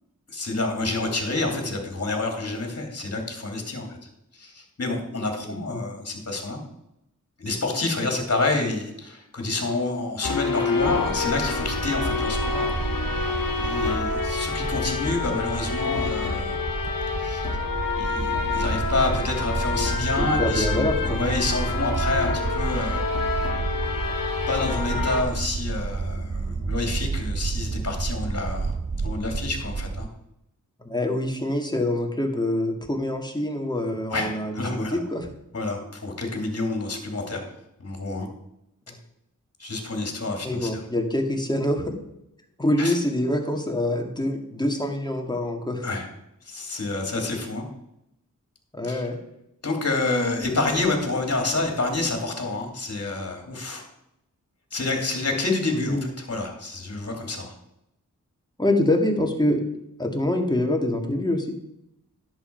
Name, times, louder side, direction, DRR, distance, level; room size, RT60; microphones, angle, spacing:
voice 1, 0.3-4.0 4.3-6.6 7.4-12.7 13.6-16.6 17.2-17.4 18.0-20.7 21.1-23.1 24.5-28.7 29.0-30.1 34.1-35.0 35.5-37.5 37.8-38.3 39.6-40.8 42.8-42.9 45.8-46.1 46.4-47.7 48.8-49.0 49.6-53.9 54.7-57.5, left 2 dB, 45° left, 2 dB, 2.7 m, -28 dB
voice 2, 5.4-5.8 20.2-21.2 30.9-35.3 40.4-41.9 42.6-45.9 48.7-49.2 55.7-56.1 58.6-59.6 60.0-61.5, left 1 dB, 10° left, 3 dB, 2.1 m, -25 dB
sound 1, 10.2-25.2, left 4 dB, 75° left, 1.7 m, -28 dB
sound 2, 10.8-30.1, right 4 dB, 20° right, 0.6 m, -30 dB
11.0 x 7.8 x 4.6 m, 0.82 s
cardioid pair, 55°, 34 cm